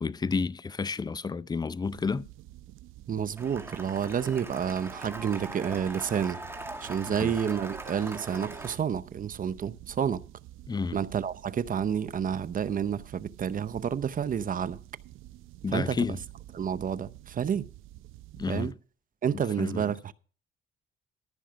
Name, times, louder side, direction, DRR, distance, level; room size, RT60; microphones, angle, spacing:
voice 1, 0.0-2.3 7.2-7.3 10.7-11.0 15.6-16.2 18.4-18.7 19.6-20.0, left 4 dB, 20° left, 0.5 m, -31 dB
sound 1, 1.8-18.7, right 15 dB, 90° right, 0.6 m, -49 dB
voice 2, 3.1-6.4 6.8-10.2 10.9-14.8 15.7-16.2 16.5-17.7 18.5-18.7 19.2-20.1, right 8 dB, 45° right, 0.7 m, -30 dB
Cheering / Applause, 3.4-8.8, right 2 dB, 10° right, 2.2 m, -41 dB
14.5 x 6.1 x 5.7 m
cardioid pair, 90°, 20 cm